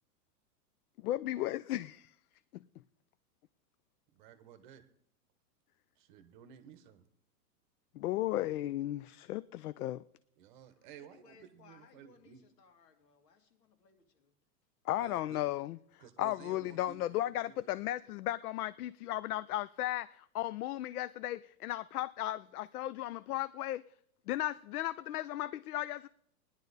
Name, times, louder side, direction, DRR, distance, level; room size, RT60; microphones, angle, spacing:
voice 1, 1.0-2.1 8.0-10.0 14.9-15.8 16.2-23.8 24.3-26.1, left 14 dB, 65° left, 0.5 m, -35 dB
voice 2, 4.1-4.8 6.0-7.1 10.4-12.4 15.0-15.5 16.0-17.7, right 8 dB, 30° right, 0.8 m, -54 dB
voice 3, 11.0-14.3, left 6 dB, 90° left, 2.5 m, -63 dB
18.0 x 10.5 x 4.0 m
supercardioid pair, 170°, 48 cm